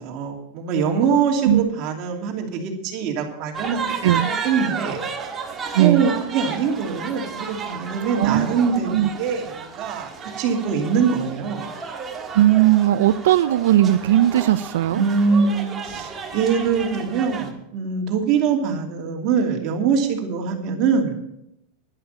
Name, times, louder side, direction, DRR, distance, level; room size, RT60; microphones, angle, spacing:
voice 1, 0.0-5.0 5.8-10.1 10.4-11.7 14.9-21.2, right 6 dB, 40° right, 1 dB, 2.7 m, -23 dB
sound 1, 3.5-17.5, right 5 dB, 15° right, 1.6 m, -32 dB
voice 2, 5.7-6.1 8.2-8.5 8.9-9.1 12.3-15.0, right 13 dB, 85° right, 12 dB, 0.5 m, -17 dB
11.0 x 11.0 x 5.6 m, 0.80 s
supercardioid pair, 165°, 0 cm